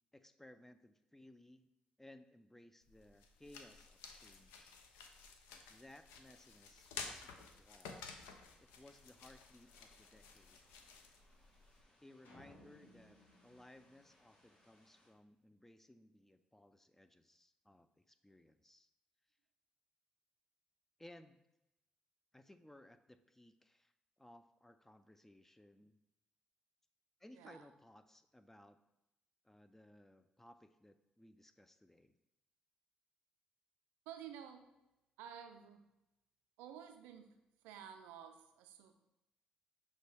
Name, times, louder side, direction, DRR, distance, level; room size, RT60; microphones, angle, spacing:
voice 1, 0.1-1.7 2.0-4.8 5.7-8.0 8.6-10.6 12.0-13.2 13.4-18.9 21.0-21.4 22.3-23.9 24.2-26.0 27.2-28.8 29.4-32.1, left 1 dB, 10° left, 10 dB, 0.3 m, -61 dB
sound 1, 2.8-11.8, left 5 dB, 90° left, 0.4 m, -53 dB
sound 2, 8.4-15.1, left 1 dB, 50° left, 1.5 m, -72 dB
sound 3, 12.2-14.7, left 1 dB, 70° left, 1.0 m, -63 dB
voice 2, 27.3-27.7 34.1-34.7 35.2-35.8 36.6-38.9, right 9 dB, 85° right, 6 dB, 0.3 m, -52 dB
6.2 x 2.2 x 3.2 m, 0.91 s
supercardioid pair, 55°, 3 cm